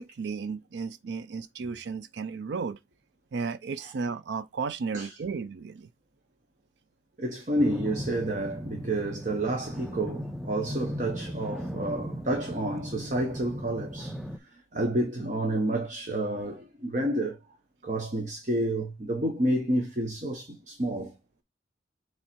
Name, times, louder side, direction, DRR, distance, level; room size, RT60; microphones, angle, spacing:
voice 1, 0.0-2.8 3.3-5.9, right 5 dB, 70° right, 0.4 m, -34 dB
voice 2, 7.2-14.2 14.5-17.4 17.8-21.2, right 1 dB, 45° right, 1.1 m, -30 dB
sound 1, 7.6-14.4, equal, ahead, 0.4 m, -37 dB
7.2 x 3.2 x 4.4 m
head